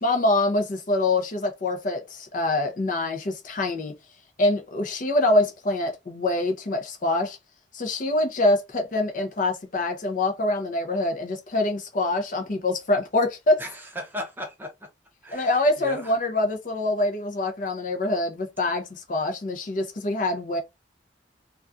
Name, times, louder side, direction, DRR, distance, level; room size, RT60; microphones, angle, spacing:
voice 1, 0.0-3.9 4.4-7.4 7.7-13.6 15.3-20.6, left 2 dB, 45° left, 0.5 m, -25 dB
voice 2, 13.6-14.7 15.2-16.1, equal, 10° right, 0.6 m, -36 dB
2.3 x 2.3 x 2.5 m
head